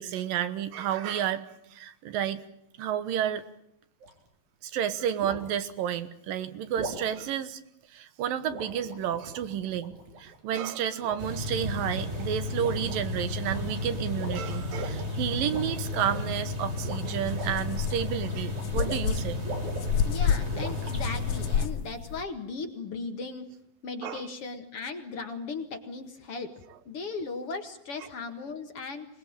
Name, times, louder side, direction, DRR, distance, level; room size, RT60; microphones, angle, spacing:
voice 1, 0.0-2.4 2.8-3.4 4.6-7.6 7.9-19.4 24.0-24.2, right 9 dB, 75° right, 12 dB, 2.9 m, -31 dB
sound 1, 4.0-4.3 5.2-5.5 6.8-7.1 8.5-10.4 11.0-11.5 11.8-12.2 12.6-13.0 13.3-13.8 14.1-15.0 15.5-16.3 16.7-19.1 19.4-20.9, right 2 dB, 55° right, 5.1 m, -41 dB
sound 2, 11.2-21.7, left 2 dB, 20° right, 3.2 m, -33 dB
sound 3, 16.6-16.7 17.2-22.2, left 8 dB, 65° left, 2.0 m, -30 dB
voice 2, 20.0-23.6 23.8-26.5 26.9-29.1, left 4 dB, 50° left, 6 dB, 2.2 m, -37 dB
25.5 x 20.0 x 8.9 m, 0.73 s
omnidirectional pair, 4.2 m